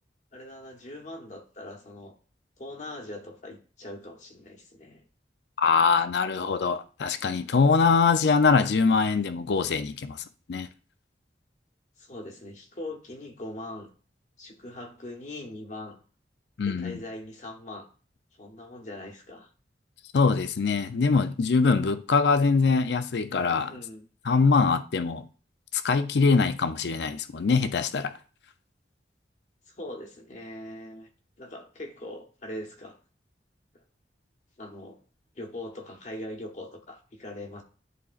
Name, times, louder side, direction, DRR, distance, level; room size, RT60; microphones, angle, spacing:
voice 1, 0.3-2.1 2.6-5.0 12.0-13.9 14.4-16.0 16.6-17.9 18.4-19.5 23.6-24.0 29.8-31.1 31.4-33.0 34.6-35.0 35.4-37.6, left 1 dB, 45° left, 0.8 m, -41 dB
voice 2, 5.6-10.7 16.6-17.0 20.1-23.7 24.2-25.2 25.7-28.2, left 4 dB, 70° left, 0.5 m, -23 dB
11.0 x 4.1 x 2.5 m
head